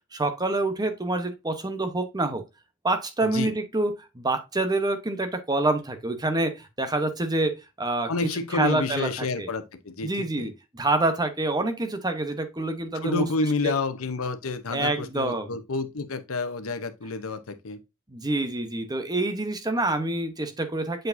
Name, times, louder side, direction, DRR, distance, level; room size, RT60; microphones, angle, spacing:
voice 1, 0.1-2.4 2.8-8.1 8.5-9.5 10.0-13.3 13.6-13.7 14.7-15.6 18.1-21.1, right 2 dB, 20° right, 0.9 m, -27 dB
voice 2, 3.2-3.5 8.1-10.5 13.0-17.8, left 3 dB, 90° left, 0.8 m, -29 dB
7.7 x 4.7 x 2.6 m
head